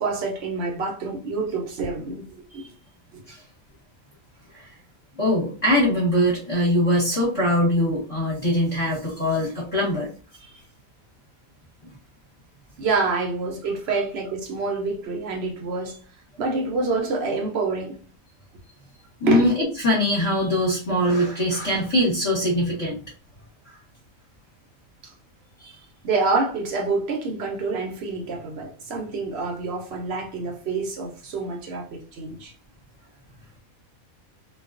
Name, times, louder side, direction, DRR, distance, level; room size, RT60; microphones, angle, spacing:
voice 1, 0.0-2.6 3.1-3.2 12.8-16.0 16.4-18.0 19.3-19.5 25.0-25.1 26.0-32.5, right 3 dB, 60° right, 0.8 m, -27 dB
voice 2, 5.2-10.1 10.4-10.5 19.2-19.5 19.8-23.0 23.7-23.8 25.6-25.7, left 1 dB, 30° left, 0.9 m, -22 dB
2.3 x 2.3 x 2.4 m
omnidirectional pair, 1.4 m